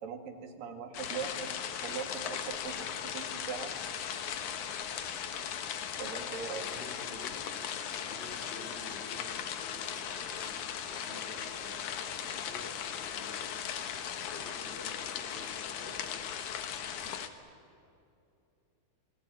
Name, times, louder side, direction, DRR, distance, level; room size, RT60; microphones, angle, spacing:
voice 1, 0.0-1.5 1.8-2.9 3.1-3.7 6.0-6.6, right 6 dB, 70° right, 4 dB, 3.8 m, -40 dB
sound 1, 0.9-17.3, left 8 dB, 65° left, 2.5 m, -38 dB
voice 2, 6.4-7.7 8.0-13.5 14.0-16.5, left 2 dB, 15° left, 4 dB, 3.7 m, -51 dB
28.5 x 21.5 x 8.9 m, 2.8 s
omnidirectional pair, 4.2 m